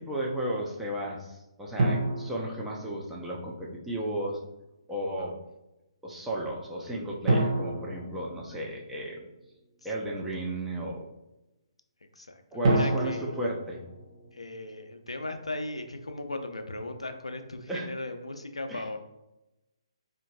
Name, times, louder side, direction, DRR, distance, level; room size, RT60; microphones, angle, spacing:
voice 1, 0.0-4.4 4.9-5.4 6.0-9.3 9.8-11.0 12.5-13.8 17.7-17.9 18.7-18.8, right 1 dB, 5° right, -4 dB, 0.5 m, -34 dB
sound 1, 1.8-3.4 7.3-9.2 12.6-14.9, right 2 dB, 50° right, 0.7 m, -29 dB
voice 2, 12.2-13.3 14.3-19.0, left 2 dB, 85° left, 6 dB, 0.4 m, -38 dB
3.8 x 2.5 x 2.3 m, 0.94 s
figure-of-eight pair, 135°, 3 cm